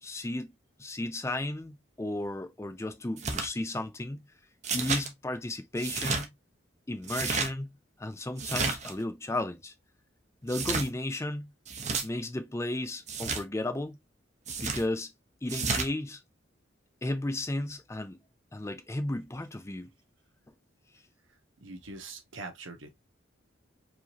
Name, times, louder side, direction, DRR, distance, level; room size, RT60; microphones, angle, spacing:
voice 1, 0.0-0.5 0.8-4.2 4.7-6.3 6.9-7.7 8.0-9.7 10.4-11.5 12.0-14.0 14.6-15.1 15.4-16.2 17.0-18.2 18.5-19.9, left 1 dB, 15° left, 0.4 m, -34 dB
sound 1, 3.2-3.5 4.6-5.1 5.8-6.2 7.0-7.5 8.4-8.9 10.5-10.9 11.7-12.0 13.1-13.4 14.5-14.8 15.5-15.9, right 4 dB, 35° right, 0.9 m, -31 dB
voice 2, 21.3-23.0, right 3 dB, 85° right, 1.2 m, -44 dB
4.7 x 3.1 x 2.8 m
head